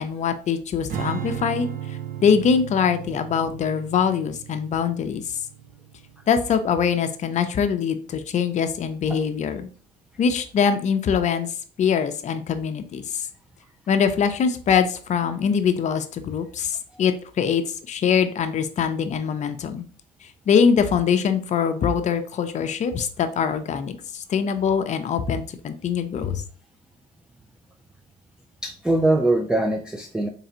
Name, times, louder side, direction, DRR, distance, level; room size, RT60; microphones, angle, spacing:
voice 1, 0.0-1.7 2.2-5.2 6.3-9.7 10.2-11.5 11.8-13.0 13.9-17.6 17.9-19.9 20.5-26.4, left 7 dB, 45° left, 8 dB, 0.6 m, -23 dB
Strum, 0.9-7.3, right 10 dB, 55° right, 0.6 m, -36 dB
voice 2, 28.6-30.3, right 2 dB, 5° right, 4 dB, 0.3 m, -22 dB
3.8 x 3.3 x 2.8 m, 0.41 s
cardioid pair, 110°, 17 cm